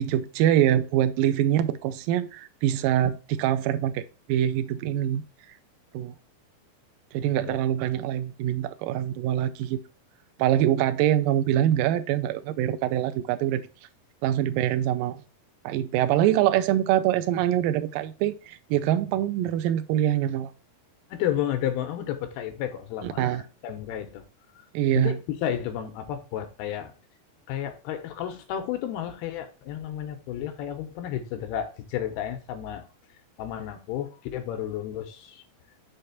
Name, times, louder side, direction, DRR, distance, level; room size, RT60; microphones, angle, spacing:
voice 1, 0.0-5.2 5.9-6.1 7.1-9.8 10.4-13.7 14.2-15.2 15.6-20.5 23.0-23.4 24.7-25.2, right 11 dB, 80° right, 2.0 m, -24 dB
voice 2, 21.1-24.2 25.0-26.9 27.5-32.9 33.4-35.4, left 10 dB, 80° left, 2.8 m, -32 dB
6.5 x 3.4 x 5.7 m
omnidirectional pair, 4.4 m